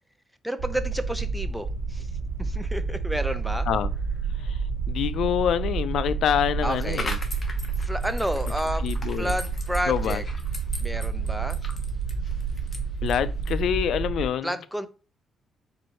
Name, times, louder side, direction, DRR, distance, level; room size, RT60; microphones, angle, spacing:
voice 1, 0.4-2.1 2.4-3.7 6.6-7.1 7.8-8.9 9.2-10.2 10.8-11.6 14.4-14.9, equal, 5° right, 0.5 m, -31 dB
sound 1, 0.6-14.3, right 4 dB, 75° right, 1.2 m, -29 dB
voice 2, 4.4-7.2 8.8-9.3 9.9-10.2 13.0-14.5, left 9 dB, 75° left, 0.3 m, -26 dB
sound 2, 6.7-13.7, left 3 dB, 30° left, 0.9 m, -40 dB
4.6 x 2.6 x 4.3 m
cardioid pair, 115°, 0 cm